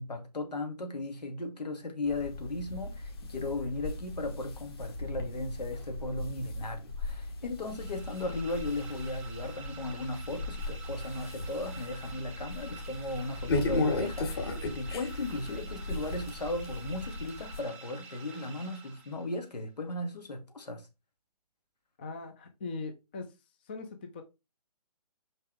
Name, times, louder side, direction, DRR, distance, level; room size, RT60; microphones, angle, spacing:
voice 1, 0.0-20.9, left 2 dB, 85° left, 2.6 m, -36 dB
sound 1, 2.1-17.6, left 2 dB, 40° left, 1.7 m, -37 dB
sound 2, 7.6-19.5, right 5 dB, 5° right, 1.0 m, -49 dB
voice 2, 22.0-23.4 23.6-24.2, left 3 dB, 15° left, 0.4 m, -40 dB
6.0 x 5.4 x 3.4 m
hypercardioid pair, 165°, 20 cm